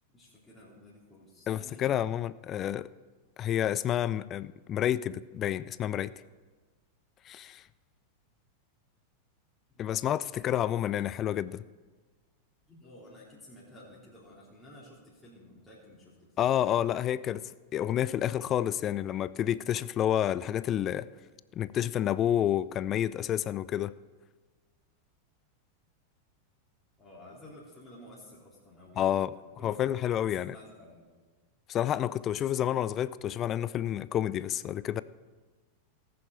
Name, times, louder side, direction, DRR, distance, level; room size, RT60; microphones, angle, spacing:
voice 1, 0.1-1.9 9.7-10.5 11.2-11.3 12.7-16.5 27.0-29.8 30.4-31.1, left 1 dB, 10° left, -8 dB, 3.6 m, -53 dB
voice 2, 1.5-2.9 3.4-6.1 7.3-7.6 9.8-11.6 16.4-17.4 17.7-21.1 21.6-23.9 29.0-29.3 29.6-30.6 31.7-35.0, left 11 dB, 30° left, 18 dB, 0.3 m, -29 dB
19.0 x 6.9 x 4.5 m, 1.4 s
figure-of-eight pair, 90°, 0 cm